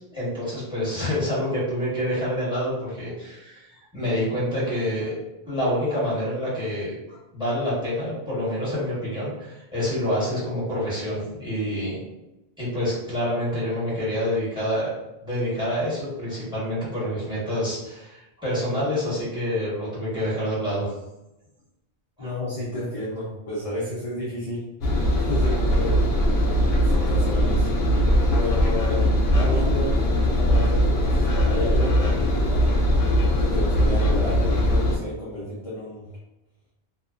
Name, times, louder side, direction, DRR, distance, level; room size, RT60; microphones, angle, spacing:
voice 1, 0.1-3.6 3.9-5.1 5.4-12.0 12.6-14.9 15.2-20.9 22.2-22.3, equal, 5° right, -8 dB, 1.1 m, -27 dB
voice 2, 22.2-24.7 25.2-26.1 26.7-27.7 28.4-32.7 33.4-36.1, left 1 dB, 40° left, -7 dB, 0.6 m, -31 dB
Engine, 24.8-35.0, equal, 85° left, 0.8 m, -20 dB
2.7 x 2.2 x 2.4 m, 0.95 s
omnidirectional pair, 1.0 m